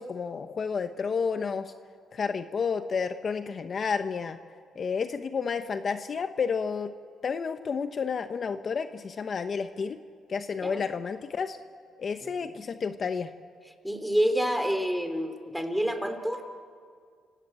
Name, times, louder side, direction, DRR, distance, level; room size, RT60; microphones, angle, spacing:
voice 1, 0.0-1.7 2.1-4.4 4.8-6.9 7.2-10.0 10.3-11.6 12.0-13.3, left 5 dB, 45° left, 9 dB, 1.0 m, -31 dB
voice 2, 13.8-16.4, equal, ahead, 7 dB, 3.1 m, -28 dB
30.0 x 18.0 x 8.9 m, 2.1 s
cardioid pair, 90°, 0 cm